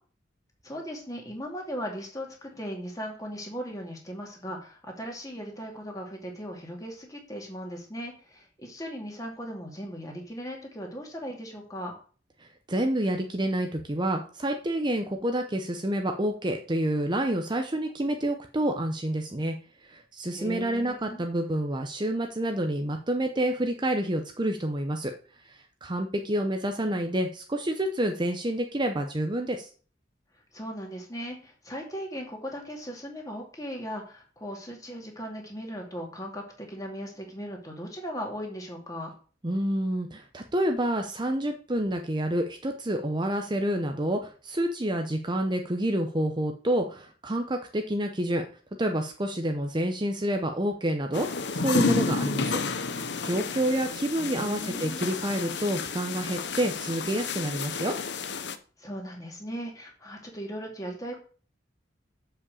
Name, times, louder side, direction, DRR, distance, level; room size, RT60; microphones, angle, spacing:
voice 1, 0.6-11.9 20.3-21.3 30.5-39.1 54.2-55.2 58.8-61.2, equal, 20° left, 1 dB, 2.5 m, -38 dB
voice 2, 12.4-25.1 25.4-29.7 39.4-48.4 48.8-57.9, right 1 dB, 25° right, 5 dB, 0.8 m, -28 dB
sound 1, 51.1-58.6, left 4 dB, 65° left, 0.9 m, -31 dB
7.3 x 5.7 x 6.9 m, 0.40 s
head